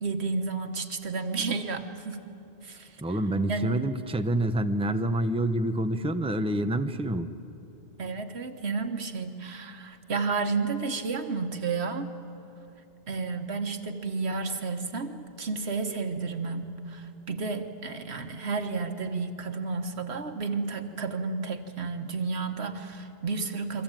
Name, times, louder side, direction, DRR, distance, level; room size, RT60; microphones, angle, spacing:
voice 1, 0.0-2.2 2.6-3.2 3.5-3.8 8.0-12.1 13.1-23.8, right 4 dB, 85° right, 7 dB, 1.6 m, -32 dB
voice 2, 3.0-7.3, right 1 dB, 5° right, 8 dB, 0.7 m, -27 dB
28.0 x 23.0 x 9.0 m, 2.8 s
omnidirectional pair, 1.1 m